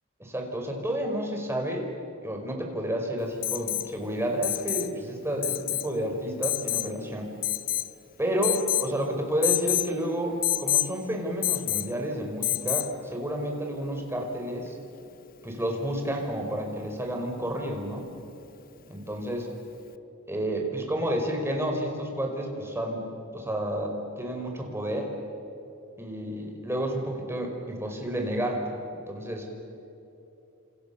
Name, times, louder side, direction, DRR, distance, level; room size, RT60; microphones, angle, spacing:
voice 1, 0.2-1.9 2.2-7.3 8.2-14.8 15.4-18.1 18.9-19.5 20.3-23.0 23.3-25.1 26.0-28.7 29.1-29.5, right 1 dB, 10° right, 2 dB, 4.9 m, -30 dB
Alarm, 3.4-3.9 4.4-4.9 5.4-5.9 6.4-6.9 7.4-7.9 8.4-8.9 9.4-9.9 10.4-10.9 11.4-11.9 12.4-12.9 14.7-14.8, left 15 dB, 45° left, 0.7 m, -27 dB
30.0 x 28.0 x 7.0 m, 2.8 s
head